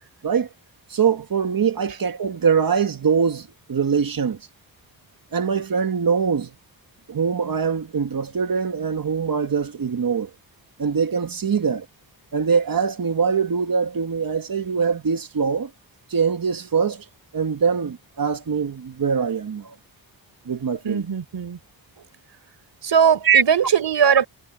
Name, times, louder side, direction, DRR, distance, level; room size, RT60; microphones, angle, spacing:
voice 1, 0.9-4.4 5.3-6.5 7.1-10.3 10.8-11.9 12.3-15.7 16.1-17.0 17.3-19.8 20.5-21.0 23.3-23.4, right 6 dB, 50° right, 1.8 m, -22 dB
voice 2, 20.8-21.6 22.8-24.3, right 7 dB, 65° right, 4.0 m, -19 dB
wide cardioid pair, 110°, 45 cm